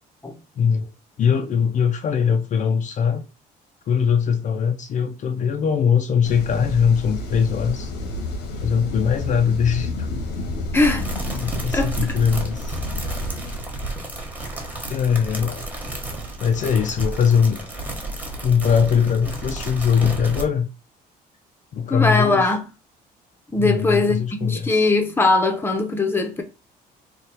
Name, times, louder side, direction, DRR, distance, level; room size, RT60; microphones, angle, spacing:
voice 1, 0.6-0.9 1.2-3.2 3.9-7.9 8.6-10.2 11.4-12.8 14.9-15.6 16.4-17.7 18.4-20.7 21.7-22.5 23.6-24.9, left 7 dB, 45° left, 0.5 m, -21 dB
sound 1, 6.2-13.6, left 1 dB, 85° left, 1.3 m, -30 dB
voice 2, 10.7-11.1 11.7-11.9 21.9-22.6 23.5-26.4, left 3 dB, 15° left, 0.7 m, -20 dB
sound 2, 11.0-20.4, right 2 dB, 10° right, 1.2 m, -32 dB
3.3 x 2.3 x 4.3 m
cardioid pair, 110°, 17 cm